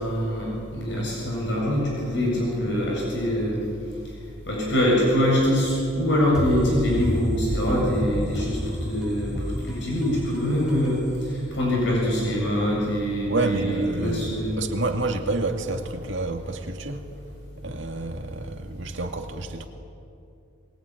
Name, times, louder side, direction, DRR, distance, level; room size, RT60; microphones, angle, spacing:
voice 1, 0.0-3.6 4.5-14.6, equal, 60° left, 7.3 m, -24 dB
sound 1, 6.3-12.0, equal, 5° right, 2.9 m, -32 dB
voice 2, 13.3-17.1 17.6-19.7, right 2 dB, 70° right, 2.2 m, -29 dB
22.0 x 21.5 x 9.8 m
head